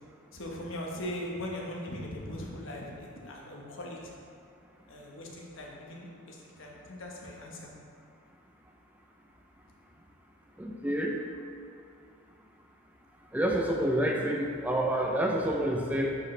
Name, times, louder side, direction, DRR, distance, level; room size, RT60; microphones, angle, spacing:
voice 1, 0.3-4.0 4.9-7.7, left 1 dB, 70° left, -2 dB, 1.2 m, -40 dB
voice 2, 10.6-11.2 13.3-16.1, right 1 dB, 10° right, 0 dB, 0.5 m, -28 dB
10.0 x 4.9 x 3.2 m, 2.4 s
head